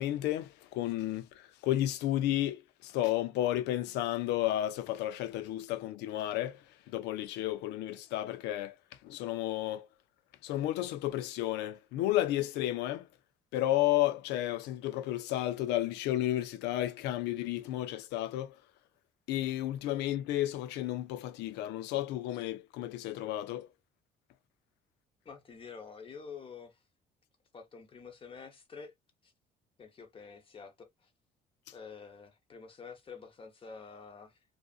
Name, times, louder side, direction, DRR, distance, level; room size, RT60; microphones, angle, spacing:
voice 1, 0.0-6.6 6.9-8.7 9.0-9.9 10.4-13.1 13.5-18.5 19.3-23.7, left 14 dB, 85° left, 0.4 m, -32 dB
voice 2, 25.2-26.8 27.5-28.9 29.2-29.3 29.8-31.1 31.7-34.4, left 5 dB, 30° left, 0.8 m, -48 dB
2.5 x 2.5 x 2.3 m
cardioid pair, 110°, 17 cm